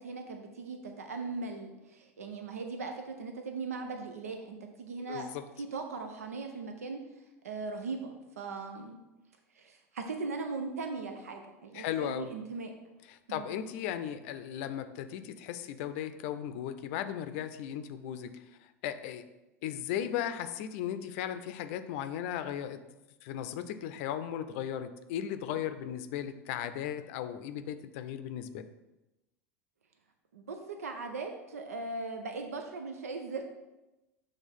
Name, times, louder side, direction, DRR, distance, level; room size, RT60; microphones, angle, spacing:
voice 1, 0.0-5.3 5.6-7.0 7.4-9.0 9.5-12.7 13.3-13.5 30.3-33.4, right 4 dB, 90° right, 4 dB, 0.6 m, -39 dB
voice 2, 5.1-5.4 11.7-12.3 13.1-18.3 18.8-19.2 19.6-22.8 23.2-28.7, left 10 dB, 65° left, 10 dB, 0.5 m, -36 dB
6.3 x 3.5 x 5.4 m, 1.0 s
hypercardioid pair, 90°, 8 cm